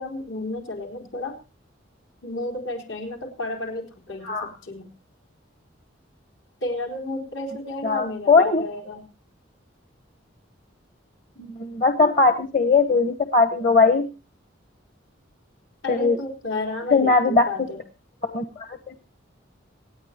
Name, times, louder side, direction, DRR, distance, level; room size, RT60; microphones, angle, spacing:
voice 1, 0.0-1.4 2.2-4.9 6.6-9.0 15.8-17.8, left 2 dB, 80° left, 3 dB, 4.4 m, -32 dB
voice 2, 7.8-8.6 11.4-14.0 15.9-16.2 16.9-17.5 18.2-18.9, left 4 dB, 40° left, 6 dB, 1.2 m, -20 dB
26.5 x 9.6 x 3.0 m, 0.33 s
head